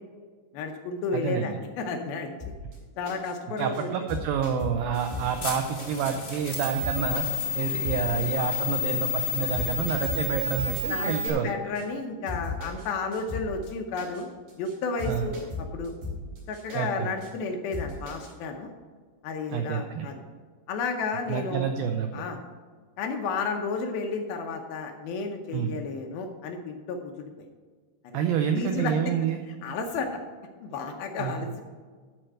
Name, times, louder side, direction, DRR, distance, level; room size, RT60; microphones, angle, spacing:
voice 1, 0.5-2.3 3.0-3.9 10.9-14.3 14.6-15.9 16.5-18.7 19.2-20.1 20.7-21.7 22.1-22.4 23.0-27.3 28.0-28.2 28.5-29.1 29.6-30.2 30.6-31.6, left 4 dB, 75° left, 3 dB, 2.3 m, -32 dB
voice 2, 1.1-1.6 3.6-7.3 7.6-11.6 15.1-15.3 16.7-17.1 19.5-20.1 21.3-22.2 25.5-25.7 28.1-29.4 31.2-31.5, right 8 dB, 85° right, 5 dB, 2.0 m, -28 dB
sound 1, 2.4-2.8 3.1-3.3 3.6-3.8 4.1-5.9 6.3-6.4 6.8-7.4 7.7-8.3 8.5-8.8 9.0-9.3 9.5-11.3 11.8-11.9 12.3-12.9 13.1-13.7 14.0-14.2 14.5-14.7 15.0-16.8 17.2-17.3 17.7-18.3, left 3 dB, 65° right, 5.4 m, -37 dB
sound 2, 4.9-11.3, left 4 dB, 50° left, 1.2 m, -30 dB
12.5 x 4.5 x 7.7 m, 1.5 s
omnidirectional pair, 4.9 m